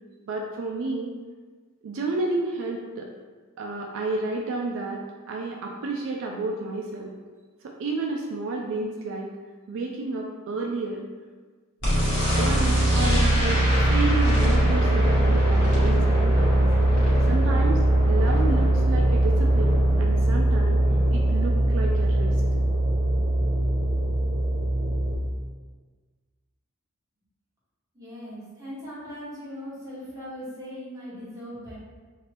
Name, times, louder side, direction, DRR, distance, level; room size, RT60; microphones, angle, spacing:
voice 1, 0.3-1.1 1.8-3.1 3.6-5.0 5.3-7.1 7.6-9.3 9.7-11.0 12.4-16.7 17.3-17.8 18.1-20.8 21.1-22.3, right 3 dB, 65° right, 0 dB, 0.3 m, -30 dB
sound 1, 11.8-25.1, right 1 dB, 60° left, 1.2 m, -21 dB
voice 2, 27.9-31.7, equal, 15° right, -9 dB, 1.1 m, -39 dB
2.8 x 2.6 x 3.2 m, 1.4 s
head